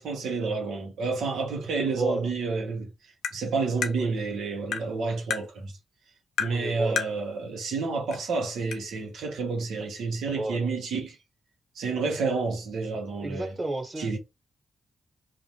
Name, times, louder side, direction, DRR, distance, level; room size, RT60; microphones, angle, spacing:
voice 1, 0.0-2.9 3.3-5.7 6.4-11.2 11.8-13.5 14.0-14.2, right 4 dB, 85° right, 0.9 m, -29 dB
voice 2, 1.9-2.3 4.0-4.1 6.5-7.0 10.3-10.7 13.2-14.2, right 2 dB, 30° right, 1.2 m, -33 dB
Tap, 3.2-3.4 3.8-4.0 4.7-4.9 5.3-5.4 6.4-6.6 7.0-7.1 8.1-8.2 8.7-8.8, left 8 dB, 85° left, 0.5 m, -29 dB
2.5 x 2.1 x 2.9 m
cardioid pair, 60°, 0 cm